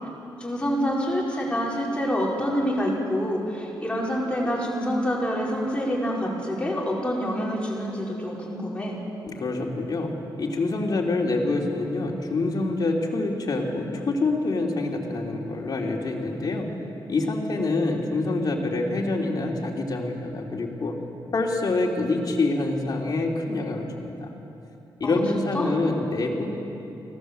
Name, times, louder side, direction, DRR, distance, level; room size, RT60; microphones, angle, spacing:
voice 1, 0.4-9.0 25.0-25.7, equal, 15° left, -4 dB, 5.3 m, -27 dB
voice 2, 9.3-10.1 10.4-16.7 17.1-20.9 21.3-24.3 25.0-26.5, left 2 dB, 50° left, 0 dB, 3.3 m, -26 dB
25.0 x 17.5 x 7.9 m, 2.9 s
cardioid pair, 110°, 8 cm